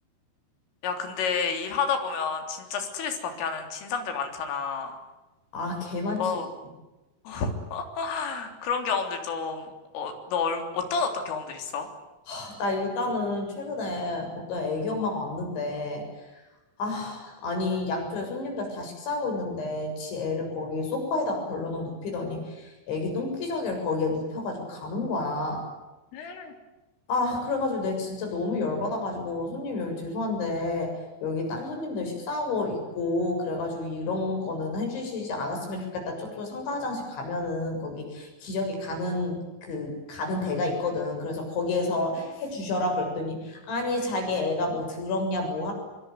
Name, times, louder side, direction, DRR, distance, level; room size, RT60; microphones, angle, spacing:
voice 1, 0.8-4.9 6.2-6.5 7.3-11.9 26.1-26.5, left 5 dB, 90° left, 6 dB, 6.1 m, -30 dB
voice 2, 5.5-6.4 12.3-16.0 16.8-25.7 27.1-45.7, left 2 dB, 70° left, 3 dB, 9.6 m, -30 dB
25.0 x 24.0 x 9.4 m, 1.1 s
omnidirectional pair, 5.6 m